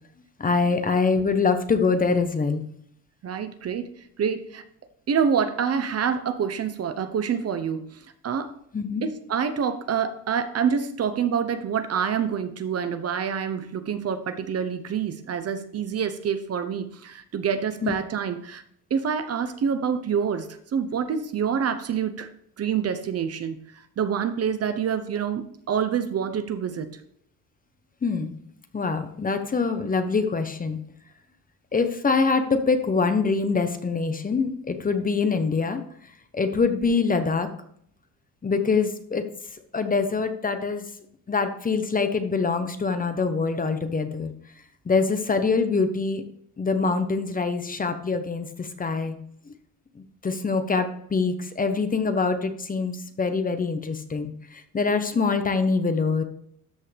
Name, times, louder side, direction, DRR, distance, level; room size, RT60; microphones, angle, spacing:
voice 1, 0.4-2.6 8.7-9.0 17.8-17.9 28.0-28.4 28.7-30.8 31.7-35.8 36.3-37.5 38.4-39.2 39.7-40.8 41.3-44.3 44.9-46.2 46.6-49.2 50.2-54.3 54.7-56.2, left 4 dB, 25° left, 8 dB, 1.0 m, -24 dB
voice 2, 3.2-3.9 4.2-4.6 5.1-8.5 9.0-18.6 18.9-22.3 22.6-27.0, right 7 dB, 45° right, 10 dB, 0.9 m, -27 dB
13.0 x 5.6 x 3.4 m, 0.67 s
cardioid pair, 120°, 36 cm